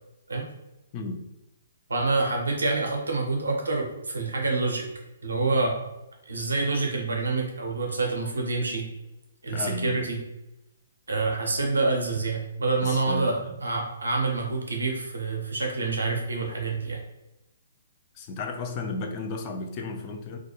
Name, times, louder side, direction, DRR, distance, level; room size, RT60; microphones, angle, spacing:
voice 1, 1.9-4.8 5.2-5.8 6.3-8.9 9.4-10.2 11.1-17.0, right 3 dB, 70° right, 1 dB, 0.6 m, -27 dB
voice 2, 9.5-10.1 12.8-13.5 18.1-20.4, left 3 dB, 30° left, 2 dB, 0.4 m, -34 dB
2.3 x 2.2 x 2.9 m, 0.96 s
figure-of-eight pair, 125°, 0 cm